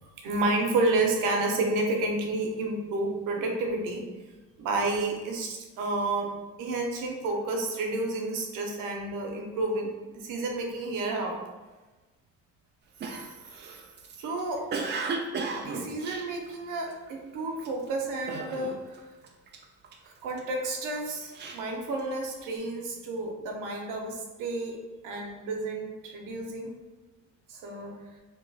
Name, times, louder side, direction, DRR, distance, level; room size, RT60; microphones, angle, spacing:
voice 1, 0.0-4.0 4.6-6.3 6.6-11.4 13.0-13.3 14.2-14.7 15.5-18.8 20.0-24.8 25.0-26.7 27.5-27.9, right 2 dB, 90° right, 1 dB, 0.8 m, -30 dB
Cough, 13.0-17.1 17.6-17.9 18.3-19.0 19.2-20.4 20.9-22.4, right 4 dB, 35° right, 0.4 m, -35 dB
2.9 x 2.3 x 4.0 m, 1.2 s
cardioid pair, 140°, 31 cm